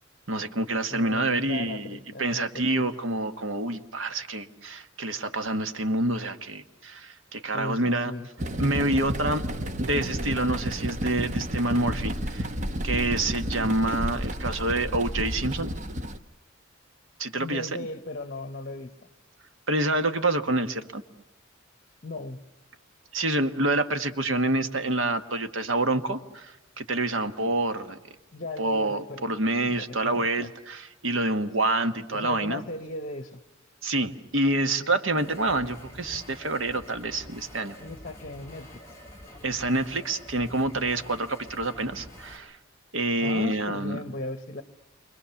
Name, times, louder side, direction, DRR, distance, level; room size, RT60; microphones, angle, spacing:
voice 1, 0.3-8.1 8.6-9.4 9.8-12.5 12.8-15.7 17.2-17.9 19.7-21.0 23.1-28.0 28.6-32.6 33.8-37.8 39.4-42.6 42.9-44.0, right 2 dB, 75° right, 1.4 m, -27 dB
voice 2, 0.9-2.9 7.5-8.3 17.3-19.1 22.0-22.4 28.3-29.4 29.6-30.5 32.1-33.4 35.1-35.4 37.8-38.8 43.2-44.6, left 2 dB, 45° left, 1.1 m, -37 dB
sound 1, 8.4-16.2, equal, 35° right, 1.0 m, -31 dB
sound 2, 35.2-42.4, left 1 dB, 15° left, 6.3 m, -47 dB
29.0 x 24.5 x 7.1 m
head